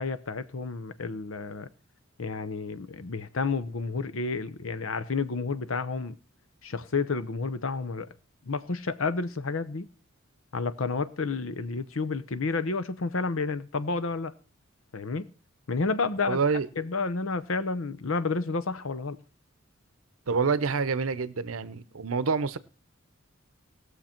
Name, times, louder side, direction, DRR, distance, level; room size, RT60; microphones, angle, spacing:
voice 1, 0.0-1.7 2.2-6.2 6.6-8.1 8.5-9.9 10.5-14.3 14.9-15.3 15.7-16.4 16.8-19.2, left 4 dB, 70° left, 0.8 m, -30 dB
voice 2, 16.3-16.7 20.3-22.6, right 5 dB, 85° right, 0.7 m, -27 dB
18.5 x 6.9 x 4.4 m
head